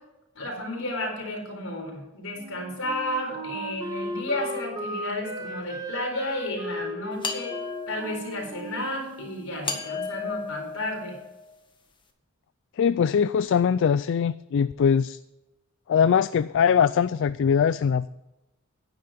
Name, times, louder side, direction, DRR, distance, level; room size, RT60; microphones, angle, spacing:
voice 1, 0.3-7.6 7.9-11.1, left 1 dB, 80° left, 1 dB, 4.4 m, -32 dB
Wind instrument woodwind instrument, 2.4-9.9, equal, 20° right, 1.5 m, -36 dB
sound 1, 7.2-8.3 9.6-11.5, left 5 dB, 25° left, 1.5 m, -34 dB
voice 2, 12.8-15.2 15.9-18.1, left 7 dB, 60° left, 15 dB, 0.3 m, -22 dB
10.5 x 10.0 x 5.0 m, 0.97 s
head